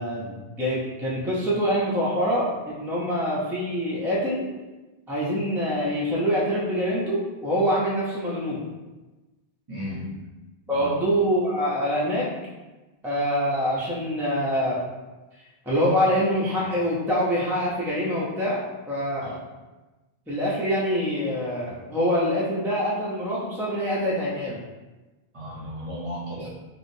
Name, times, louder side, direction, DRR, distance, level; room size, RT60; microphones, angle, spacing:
voice 1, 0.0-4.5 5.1-8.6 10.7-12.3 13.0-14.8 15.7-18.6 18.9-19.4 20.3-24.6, equal, 5° right, -6 dB, 0.5 m, -25 dB
voice 2, 9.7-10.1 10.7-11.0 19.2-19.3 25.3-26.5, left 1 dB, 35° right, -6 dB, 0.7 m, -34 dB
4.4 x 2.0 x 2.6 m, 1.1 s
omnidirectional pair, 1.0 m